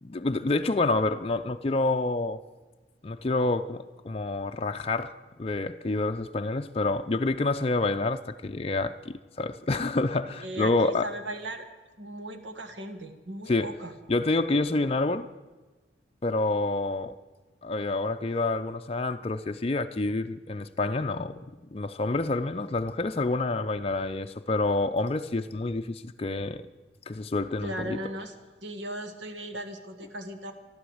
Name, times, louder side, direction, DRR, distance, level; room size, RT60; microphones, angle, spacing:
voice 1, 0.0-2.4 3.0-11.1 13.5-13.7 14.1-15.3 16.2-17.1 17.6-21.4 21.7-26.6 27.1-28.0, left 2 dB, 30° left, 0.5 m, -28 dB
voice 2, 10.4-11.7 12.0-13.9 27.6-28.3 28.6-30.5, right 1 dB, 80° right, 1.5 m, -37 dB
13.5 x 12.0 x 7.9 m
head